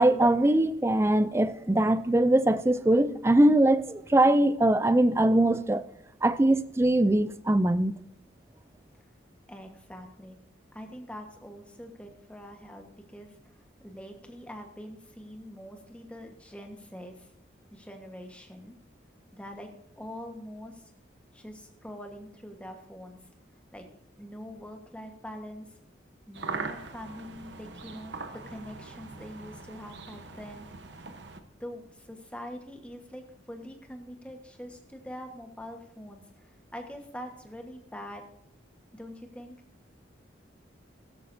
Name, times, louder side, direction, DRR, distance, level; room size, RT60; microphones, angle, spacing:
voice 1, 0.0-5.8 6.2-7.9, right 1 dB, 15° right, 0.3 m, -22 dB
voice 2, 9.5-10.4 10.7-13.4 13.8-17.3 17.7-18.7 19.3-20.9 21.3-23.2 23.7-23.8 24.2-25.7 26.3-30.7 31.6-38.3 38.9-39.5, equal, 5° left, 1.3 m, -44 dB
sound 1, 26.3-31.4, right 4 dB, 70° right, 1.0 m, -41 dB
16.0 x 13.0 x 2.7 m
head